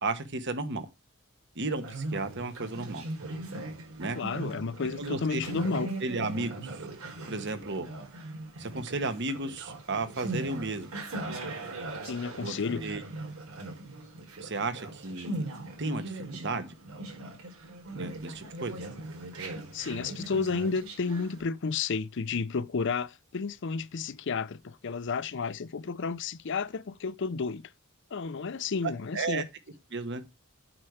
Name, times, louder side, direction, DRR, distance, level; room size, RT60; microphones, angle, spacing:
voice 1, 0.0-0.9 1.5-3.0 4.0-4.2 5.0-5.4 6.0-6.8 7.3-7.9 8.6-10.9 12.4-13.0 14.4-15.4 15.8-16.7 17.9-18.8 28.8-29.4 29.9-30.2, right 3 dB, 55° right, 1.3 m, -33 dB
Conversation, 1.7-21.4, right 2 dB, 80° right, 4.6 m, -39 dB
voice 2, 4.2-5.9 12.0-12.9 19.7-27.7 28.1-29.5, left 5 dB, 55° left, 0.5 m, -32 dB
8.8 x 4.6 x 6.5 m
head